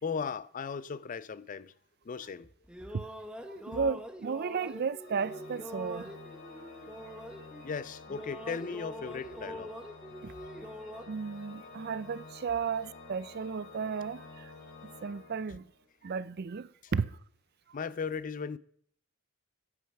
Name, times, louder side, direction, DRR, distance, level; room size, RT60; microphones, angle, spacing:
voice 1, 0.0-1.7 2.1-2.5 7.6-9.7 10.4-10.5 17.7-18.6, left 5 dB, 40° left, 0.4 m, -37 dB
sound 1, 2.4-7.8 8.1-11.1, equal, 5° right, 1.0 m, -44 dB
voice 2, 3.5-6.1 7.0-7.1 10.2-10.3 11.1-14.5 14.8-15.6 16.0-17.2, right 5 dB, 50° right, 0.4 m, -34 dB
Organ, 5.0-15.9, left 3 dB, 60° left, 3.4 m, -50 dB
11.0 x 8.6 x 5.8 m
head